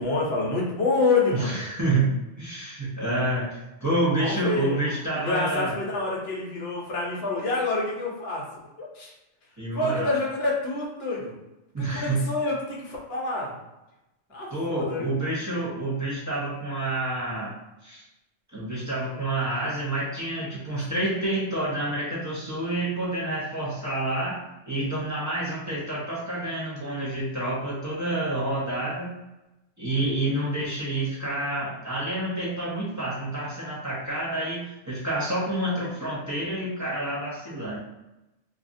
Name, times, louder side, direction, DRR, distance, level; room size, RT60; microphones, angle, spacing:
voice 1, 0.0-1.6 4.2-8.5 8.8-9.1 9.7-11.3 11.8-13.5 14.3-15.1, left 3 dB, 60° left, -3 dB, 0.9 m, -27 dB
voice 2, 1.3-2.1 2.4-5.7 9.6-10.1 11.7-12.2 14.5-17.5 17.8-18.0 18.5-29.1 29.8-37.8, right 2 dB, 25° right, -7 dB, 0.4 m, -28 dB
2.7 x 2.4 x 2.5 m, 0.97 s
omnidirectional pair, 1.2 m